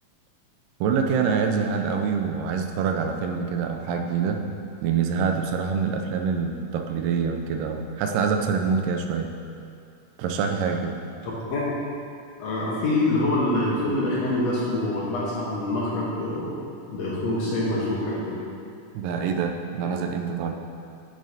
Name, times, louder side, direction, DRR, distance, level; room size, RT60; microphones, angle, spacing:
voice 1, 0.8-4.4 4.8-9.3 10.2-11.0 18.9-20.5, right 6 dB, 90° right, 4 dB, 2.2 m, -25 dB
voice 2, 11.2-11.7 12.4-16.5 16.9-18.4, left 2 dB, 65° left, -6 dB, 1.9 m, -25 dB
9.0 x 6.3 x 2.7 m, 2.5 s
omnidirectional pair, 3.7 m